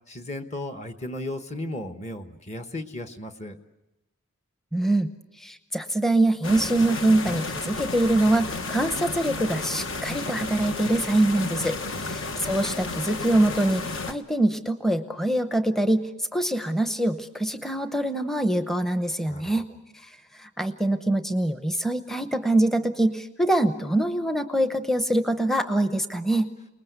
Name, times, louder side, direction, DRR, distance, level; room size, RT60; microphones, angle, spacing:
voice 1, 0.1-3.6 11.9-12.3 19.3-19.6, left 1 dB, 30° left, 7 dB, 1.2 m, -35 dB
voice 2, 4.7-5.1 5.4-19.7 20.0-20.1 20.4-26.5, right 1 dB, ahead, 8 dB, 0.8 m, -24 dB
sound 1, 6.4-14.1, left 3 dB, 60° left, 1.3 m, -32 dB
29.5 x 20.0 x 8.1 m, 1.1 s
head